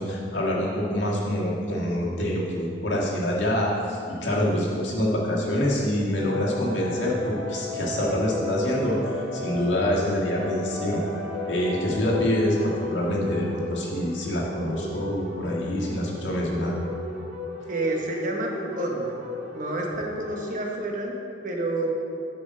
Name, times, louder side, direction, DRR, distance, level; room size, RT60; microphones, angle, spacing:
voice 1, 0.0-11.0 11.5-16.7, equal, 85° left, -4 dB, 1.7 m, -26 dB
sound 1, 6.2-20.6, left 2 dB, 65° right, 2.0 m, -35 dB
voice 2, 17.7-19.2 19.5-21.9, right 2 dB, 45° right, 0 dB, 1.2 m, -29 dB
8.2 x 5.0 x 6.3 m, 2.5 s
head